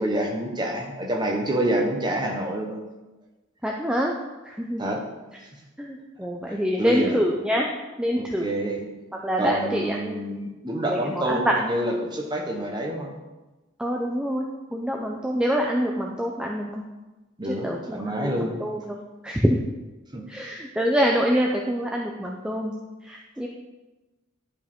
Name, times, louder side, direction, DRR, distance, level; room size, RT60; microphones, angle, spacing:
voice 1, 0.0-2.8 4.8-5.0 6.5-7.2 8.2-8.8 9.4-13.1 17.4-18.6 20.1-20.2, right 1 dB, 20° right, 1 dB, 1.0 m, -27 dB
voice 2, 3.6-4.1 4.4-4.8 5.8-7.7 8.0-8.5 9.2-10.2 10.9-11.5 13.8-16.8 17.6-19.0 19.2-19.6 20.3-22.7 23.0-23.5, equal, 5° right, -1 dB, 0.4 m, -26 dB
11.0 x 5.0 x 3.6 m, 1.1 s
head